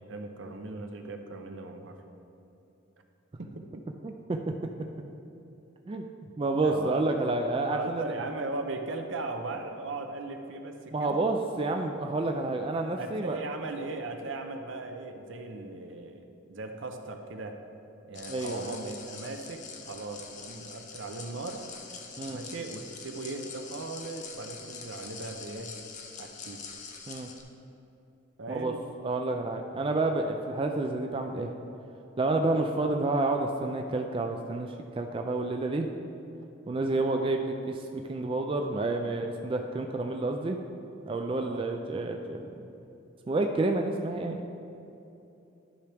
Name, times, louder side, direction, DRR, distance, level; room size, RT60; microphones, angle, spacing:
voice 1, 0.0-2.0 3.4-3.8 6.6-7.1 7.7-11.2 13.0-17.6 18.1-21.7 22.3-25.7 26.2-26.6 28.4-28.8 41.4-41.6, right 2 dB, 70° right, 5 dB, 0.6 m, -38 dB
voice 2, 4.0-4.4 5.9-6.0 6.4-8.0 10.9-13.4 18.3-18.7 22.2-22.4 27.1-27.3 28.5-28.7 29.0-31.5 32.2-35.9 36.7-40.6 41.1-42.7 43.3-44.4, right 2 dB, 25° right, 3 dB, 0.3 m, -29 dB
sound 1, 18.1-27.4, left 5 dB, 40° left, 0.7 m, -44 dB
11.5 x 5.8 x 3.4 m, 2.8 s
head